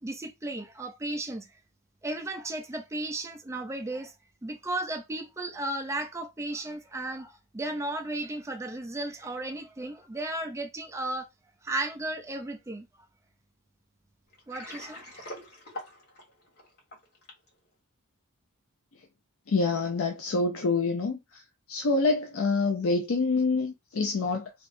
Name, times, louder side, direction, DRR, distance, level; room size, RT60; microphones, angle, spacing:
voice 1, 0.0-1.5 2.0-4.1 4.4-11.3 11.6-12.9 14.5-15.3, right 2 dB, 15° right, 0.4 m, -34 dB
Water, 14.3-17.5, left 1 dB, 45° left, 1.5 m, -43 dB
voice 2, 19.5-21.4 21.7-24.5, left 3 dB, 65° left, 0.5 m, -26 dB
3.4 x 3.0 x 2.6 m
head